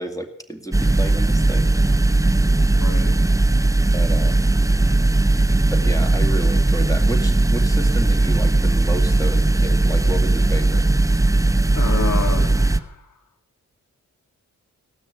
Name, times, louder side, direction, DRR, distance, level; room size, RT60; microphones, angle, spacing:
voice 1, 0.0-1.7 3.9-4.4 5.7-10.9, right 1 dB, 10° left, 5 dB, 2.3 m, -31 dB
sound 1, 0.7-12.8, right 2 dB, 10° right, 0.8 m, -18 dB
voice 2, 2.8-3.2 11.7-13.0, left 4 dB, 70° left, 5 dB, 2.0 m, -29 dB
17.5 x 6.2 x 9.5 m, 0.76 s
cardioid pair, 50°, 33 cm